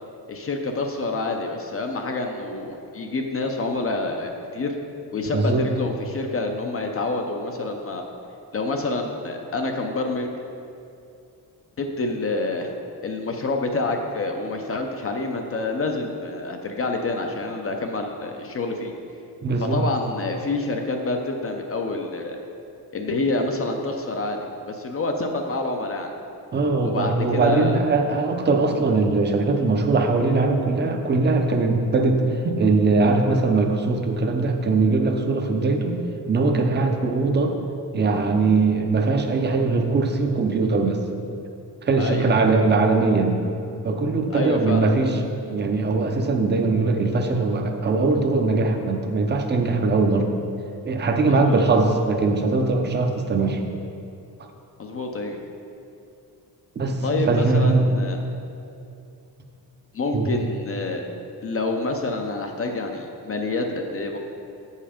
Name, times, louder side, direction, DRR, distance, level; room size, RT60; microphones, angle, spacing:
voice 1, 0.3-4.7 5.1-8.1 8.5-10.3 11.8-12.7 13.0-18.9 19.6-22.4 22.9-26.1 26.8-27.8 42.0-42.3 44.3-44.9 51.3-51.6 54.8-55.4 57.0-58.2 59.9-61.1 61.4-64.2, left 2 dB, 35° left, 3 dB, 0.5 m, -27 dB
voice 2, 5.3-5.6 19.4-19.8 26.5-36.0 36.3-37.5 37.9-41.0 41.8-43.4 43.8-45.2 45.5-50.3 50.8-53.6 56.8-57.9 60.1-60.3, right 3 dB, 25° right, 4 dB, 0.5 m, -21 dB
7.7 x 5.5 x 5.0 m, 2.7 s
wide cardioid pair, 175°, 40 cm